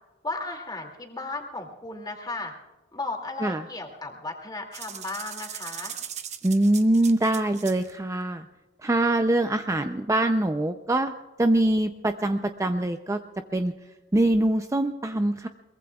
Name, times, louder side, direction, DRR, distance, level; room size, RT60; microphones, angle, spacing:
voice 1, 0.2-2.5 2.9-6.0, left 2 dB, 20° left, 2 dB, 2.4 m, -35 dB
sound 1, 4.7-7.9, right 9 dB, 35° right, 0.9 m, -39 dB
voice 2, 6.4-8.5 8.8-11.1 11.4-13.2 13.5-13.7 14.1-15.5, right 1 dB, 15° right, 7 dB, 0.5 m, -23 dB
23.0 x 22.0 x 2.3 m, 1.1 s
head